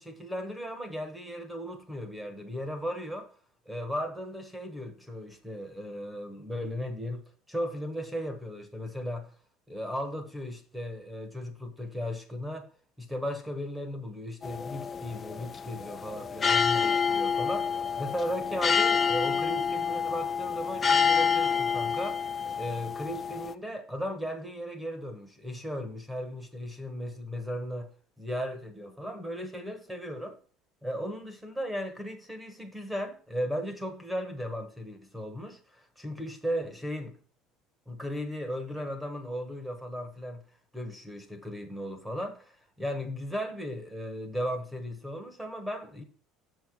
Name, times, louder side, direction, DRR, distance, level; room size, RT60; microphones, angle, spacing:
voice 1, 0.0-3.3 3.6-7.2 7.5-9.3 9.7-12.7 13.0-22.3 22.5-27.9 28.2-30.4 30.8-37.2 37.9-40.4 40.7-46.0, equal, 5° right, 1.2 m, -36 dB
sound 1, 14.4-23.5, left 6 dB, 20° left, 0.4 m, -28 dB
7.3 x 5.7 x 4.6 m
cardioid pair, 160°, 0 cm